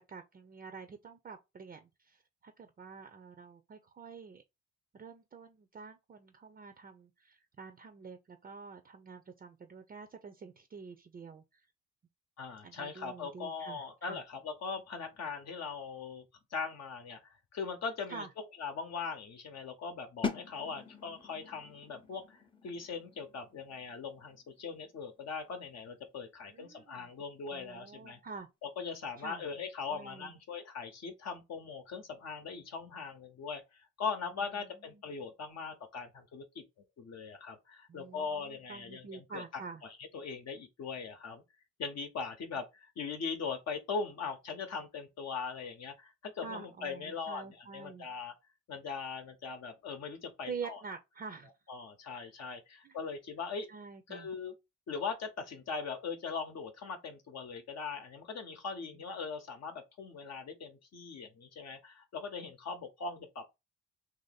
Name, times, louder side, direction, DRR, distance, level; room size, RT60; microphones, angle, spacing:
voice 1, 0.1-4.4 4.9-11.7 12.6-14.2 18.1-18.3 26.5-27.1 27.5-28.5 29.2-29.4 29.9-30.4 34.9-35.0 37.9-39.8 46.4-48.1 50.4-51.5 52.8-53.0 53.7-54.3, right 5 dB, 30° right, 0.5 m, -47 dB
voice 2, 12.4-16.2 16.5-28.2 28.8-36.6 37.0-39.4 39.8-41.4 41.8-48.3 48.7-50.8 51.7-53.7 54.1-54.5 54.9-63.5, left 5 dB, 60° left, 0.8 m, -40 dB
sound 1, 20.2-25.9, left 5 dB, 15° left, 0.7 m, -43 dB
2.9 x 2.7 x 3.9 m
cardioid pair, 90°, 30 cm